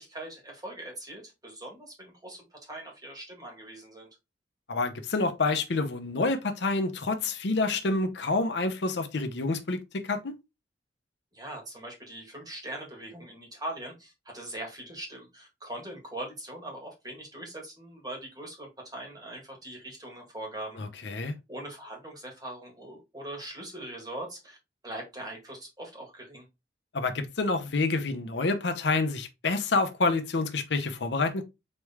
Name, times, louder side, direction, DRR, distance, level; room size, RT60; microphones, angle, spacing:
voice 1, 0.0-4.1 11.3-20.8 21.5-24.6 24.8-26.4, right 1 dB, 20° right, 1.6 m, -41 dB
voice 2, 4.7-10.3 20.7-21.3 26.9-31.4, left 3 dB, 75° left, 0.7 m, -28 dB
4.2 x 3.2 x 3.5 m
head